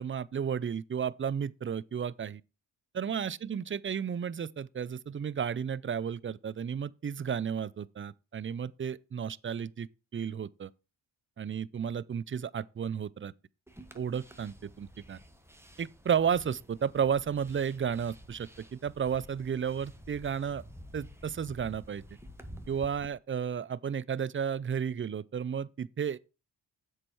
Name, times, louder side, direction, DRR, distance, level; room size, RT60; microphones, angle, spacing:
voice 1, 0.0-2.4 2.9-10.7 11.4-13.3 13.9-15.2 15.8-20.6 20.9-22.0 22.7-26.2, right 7 dB, 25° right, 0.4 m, -33 dB
sound 1, 13.7-23.1, equal, 5° right, 1.3 m, -51 dB
7.5 x 6.3 x 4.7 m
cardioid pair, 65°, 49 cm